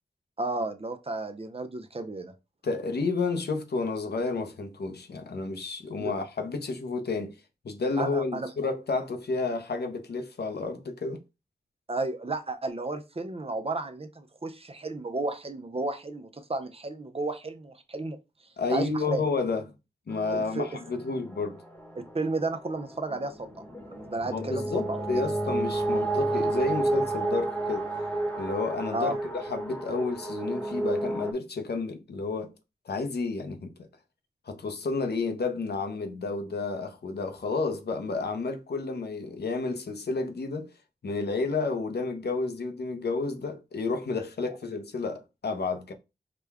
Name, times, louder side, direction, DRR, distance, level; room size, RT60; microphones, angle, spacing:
voice 1, 0.4-2.3 6.0-6.1 8.0-8.5 11.9-18.2 18.7-19.2 20.3-20.8 22.1-25.1 28.9-29.2, right 2 dB, 35° right, 0.6 m, -33 dB
voice 2, 2.6-7.3 7.6-11.2 18.6-19.7 20.1-21.6 24.3-27.9 28.4-32.5 32.9-33.7 34.5-40.7 41.0-45.9, left 3 dB, 90° left, 0.7 m, -31 dB
sound 1, 20.1-31.3, right 2 dB, 10° left, 1.1 m, -32 dB
4.9 x 2.3 x 3.4 m
wide cardioid pair, 60°, 16 cm